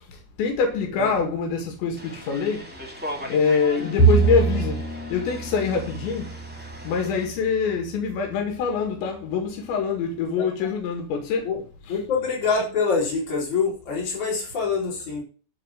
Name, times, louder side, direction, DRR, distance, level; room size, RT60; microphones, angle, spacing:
voice 1, 0.4-2.6 3.3-4.8 5.1-6.3 6.9-11.4, left 5 dB, 85° left, 4.2 m, -24 dB
sound 1, 2.0-7.3, equal, 5° right, 1.4 m, -39 dB
Bowed string instrument, 4.0-7.5, right 5 dB, 60° left, 4.2 m, -24 dB
voice 2, 10.4-10.7 11.4-11.6 11.9-15.2, left 5 dB, 40° left, 5.8 m, -25 dB
12.5 x 5.2 x 8.4 m
omnidirectional pair, 5.0 m